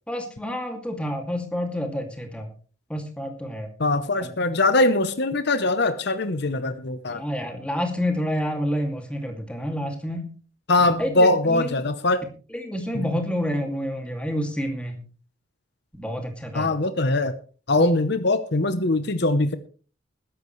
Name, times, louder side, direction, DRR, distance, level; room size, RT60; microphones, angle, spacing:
voice 1, 0.1-2.5 2.9-3.7 4.2-4.3 7.1-10.3 11.0-11.7 12.5-15.0 16.0-16.7, equal, 5° left, 3 dB, 2.4 m, -28 dB
voice 2, 3.8-7.2 10.7-12.2 12.9-13.2 16.5-17.4 17.7-19.6, left 2 dB, 55° left, 11 dB, 0.8 m, -22 dB
21.0 x 11.0 x 3.2 m, 0.39 s
head